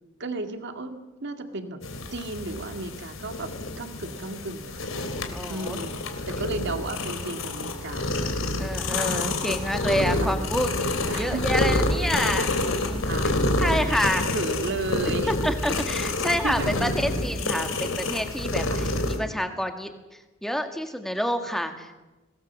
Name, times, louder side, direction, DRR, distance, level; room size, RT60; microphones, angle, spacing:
voice 1, 0.2-1.8 2.1-3.5 3.8-6.0 6.3-8.9 10.2-10.3 11.1-11.5 12.0-12.2 13.1-15.3 16.4-16.7 18.7-18.9, right 2 dB, 60° right, 6 dB, 2.2 m, -34 dB
sound 1, 1.8-19.2, left 2 dB, 70° left, 3.1 m, -28 dB
voice 2, 5.3-5.8 8.6-10.7 11.1-13.3 13.6-14.2 15.3-19.9 20.4-22.0, equal, ahead, 6 dB, 1.9 m, -28 dB
23.0 x 18.0 x 7.3 m, 1.1 s
head